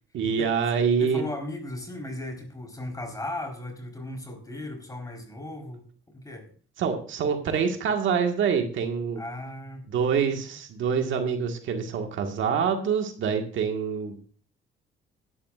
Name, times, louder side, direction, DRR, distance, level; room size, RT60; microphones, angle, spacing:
voice 1, 0.1-1.2 6.8-9.2 9.9-14.2, right 6 dB, 75° right, 4 dB, 1.7 m, -26 dB
voice 2, 1.0-5.8 6.1-6.5 9.2-9.8, left 1 dB, 15° left, 4 dB, 4.2 m, -36 dB
16.0 x 12.0 x 2.5 m, 0.41 s
cardioid pair, 90°, 20 cm